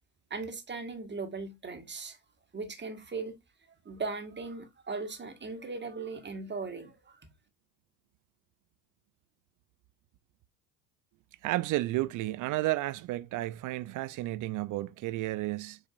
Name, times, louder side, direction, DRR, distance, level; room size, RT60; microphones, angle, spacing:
voice 1, 0.3-2.2 2.5-3.4 3.9-7.2, right 4 dB, 20° right, 1.8 m, -38 dB
voice 2, 11.4-15.8, right 17 dB, 40° right, 0.5 m, -32 dB
7.5 x 5.0 x 2.6 m
hypercardioid pair, 65°, 48 cm